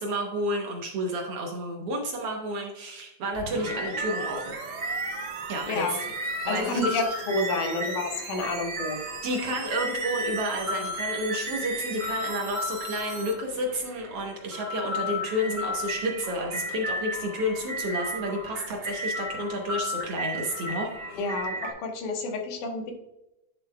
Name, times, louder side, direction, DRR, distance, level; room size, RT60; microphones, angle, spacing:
voice 1, 0.0-4.6 5.5-6.0 6.4-7.0 9.2-21.2, equal, 65° right, 2 dB, 1.5 m, -31 dB
sound 1, 3.3-13.3, right 6 dB, 90° right, 2.6 m, -41 dB
sound 2, 3.6-21.7, equal, 35° right, 1.5 m, -34 dB
voice 2, 6.5-9.0 21.1-22.9, left 3 dB, 75° left, 2 dB, 2.7 m, -29 dB
9.7 x 6.8 x 2.2 m, 0.89 s
omnidirectional pair, 3.7 m